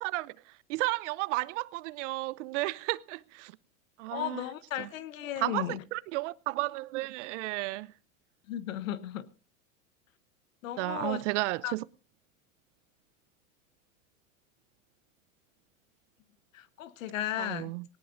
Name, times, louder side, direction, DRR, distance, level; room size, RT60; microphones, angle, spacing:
voice 1, 0.0-3.5 4.0-4.5 4.8-4.9 5.4-7.9 10.8-11.8 17.4-17.8, right 21 dB, 60° right, 0.8 m, -33 dB
voice 2, 4.1-5.8 8.5-9.3 10.6-11.2 11.6-11.7 16.5-17.7, left 12 dB, 75° left, 1.4 m, -35 dB
19.5 x 18.0 x 2.6 m
hypercardioid pair, 110°, 40 cm